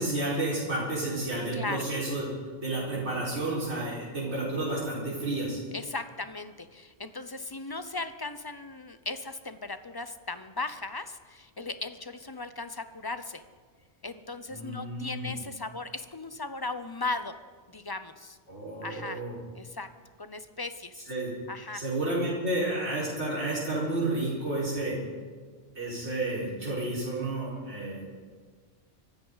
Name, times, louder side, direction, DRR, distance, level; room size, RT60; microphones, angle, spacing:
voice 1, 0.0-2.2 2.6-5.6 14.5-15.3 18.5-19.3 21.1-21.3 21.7-25.0 25.7-28.0, right 2 dB, 75° right, -8 dB, 5.0 m, -31 dB
voice 2, 1.5-1.8 5.7-13.4 14.0-17.3 17.7-18.4 18.8-19.2 19.5-19.9 20.2-21.1 21.5-21.8, left 3 dB, 25° left, 11 dB, 0.6 m, -37 dB
24.0 x 13.0 x 4.0 m, 1.5 s
omnidirectional pair, 1.1 m